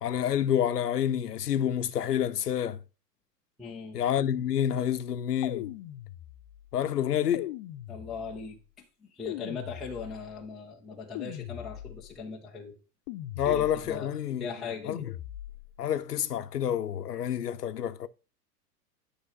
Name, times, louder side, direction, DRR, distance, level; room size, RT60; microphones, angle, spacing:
voice 1, 0.0-2.8 3.9-5.7 6.7-7.5 13.4-14.5 14.9-15.0 15.8-18.1, left 10 dB, 70° left, 0.7 m, -28 dB
voice 2, 3.6-4.0 7.9-12.8 13.4-15.1, left 5 dB, ahead, 0.3 m, -40 dB
sound 1, 5.4-6.6 7.3-8.5 9.2-10.4 11.1-12.2 13.1-14.0 14.9-15.8, left 14 dB, 35° left, 0.7 m, -40 dB
10.0 x 3.4 x 5.5 m
figure-of-eight pair, 90°, 49 cm